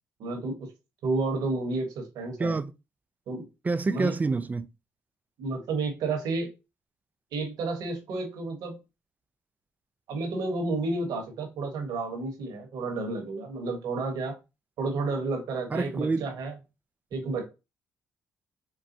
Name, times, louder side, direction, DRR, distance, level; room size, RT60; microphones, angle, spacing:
voice 1, 0.2-0.7 1.0-2.6 3.3-3.5 3.9-4.2 5.4-6.5 7.3-8.8 10.1-14.4 14.8-16.6 17.1-17.4, right 3 dB, 75° right, 1.1 m, -31 dB
voice 2, 2.4-2.7 3.7-4.7 15.7-16.3, right 3 dB, 25° right, 0.3 m, -27 dB
4.0 x 2.2 x 2.6 m
supercardioid pair, 55°, 6 cm